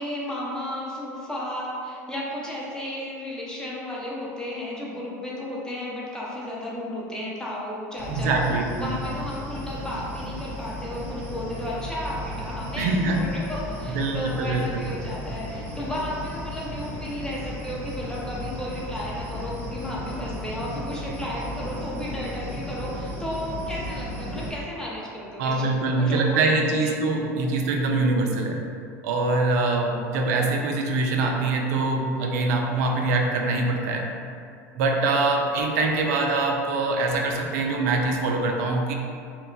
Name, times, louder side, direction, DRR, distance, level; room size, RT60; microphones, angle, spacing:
voice 1, 0.0-8.4 8.8-26.9 27.4-27.5, left 1 dB, 10° left, -6 dB, 0.7 m, -33 dB
sound 1, 8.0-24.5, left 1 dB, 25° right, 1.0 m, -35 dB
voice 2, 8.1-9.0 12.7-13.3 13.9-14.8 25.4-28.6 29.0-34.1 34.7-38.9, right 3 dB, 75° right, 2 dB, 0.4 m, -24 dB
2.2 x 2.1 x 3.8 m, 2.4 s
hypercardioid pair, 90°, 9 cm